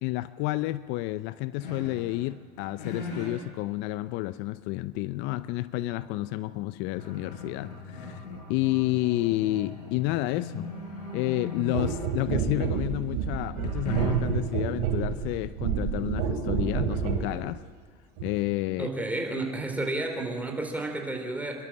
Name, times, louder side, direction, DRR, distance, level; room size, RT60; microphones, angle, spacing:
voice 1, 0.0-10.7 11.1-17.6 18.2-18.9, left 17 dB, 65° left, 0.6 m, -30 dB
sound 1, 1.6-2.3 2.6-3.4 4.1-4.2 6.2-6.3 6.6-12.4 13.6-14.4, left 3 dB, 80° left, 7.0 m, -38 dB
sound 2, 11.7-17.3 18.2-18.3, right 7 dB, 75° right, 3.6 m, -29 dB
voice 2, 18.8-21.6, right 2 dB, 5° right, 4.0 m, -31 dB
28.0 x 12.5 x 7.5 m
supercardioid pair, 100°, 21 cm